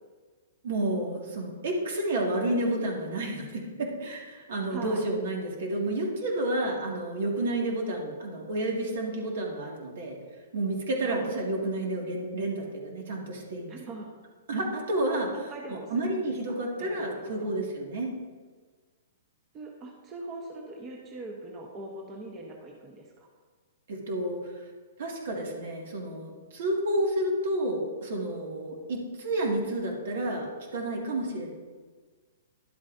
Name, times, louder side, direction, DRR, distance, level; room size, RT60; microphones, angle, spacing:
voice 1, 0.6-10.2 10.5-13.8 14.5-15.3 15.7-18.1 23.9-24.4 25.0-30.5 30.7-31.5, right 1 dB, 70° right, -1 dB, 2.1 m, -30 dB
voice 2, 4.7-5.0 11.0-11.3 13.7-14.1 15.3-16.2 16.5-17.5 19.5-23.3, right 2 dB, 25° right, -1 dB, 1.1 m, -42 dB
11.5 x 8.0 x 2.7 m, 1.5 s
hypercardioid pair, 145°, 0 cm